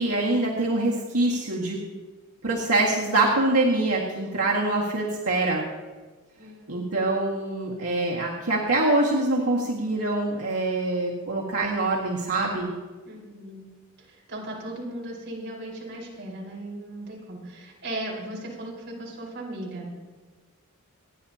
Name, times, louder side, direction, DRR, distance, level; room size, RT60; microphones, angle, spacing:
voice 1, 0.0-1.8 2.4-5.7 6.7-12.7, right 2 dB, 85° right, -4 dB, 1.9 m, -24 dB
voice 2, 6.4-6.8 13.0-13.6 14.0-19.9, right 1 dB, 50° right, -4 dB, 4.6 m, -37 dB
28.0 x 10.0 x 2.9 m, 1.3 s
head